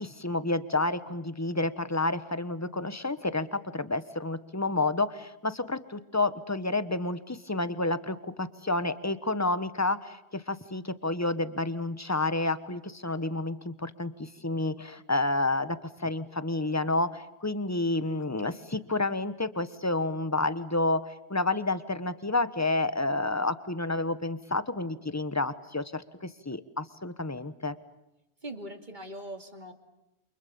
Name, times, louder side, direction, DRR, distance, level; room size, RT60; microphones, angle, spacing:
voice 1, 0.0-27.7, left 2 dB, 15° left, 13 dB, 1.2 m, -30 dB
voice 2, 28.4-29.7, right 1 dB, 45° right, 5 dB, 2.8 m, -41 dB
29.5 x 28.0 x 7.1 m, 0.90 s
omnidirectional pair, 1.1 m